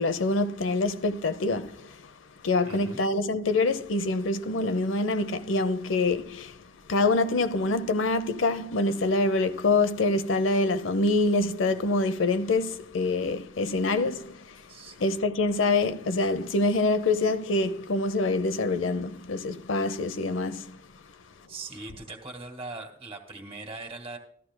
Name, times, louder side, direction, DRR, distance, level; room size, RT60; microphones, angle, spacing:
voice 1, 0.0-2.1 2.4-20.8, left 2 dB, 85° left, 0.7 m, -26 dB
voice 2, 2.6-3.0 14.7-15.0 21.5-24.2, right 3 dB, 30° right, 1.9 m, -40 dB
14.5 x 13.0 x 2.2 m
head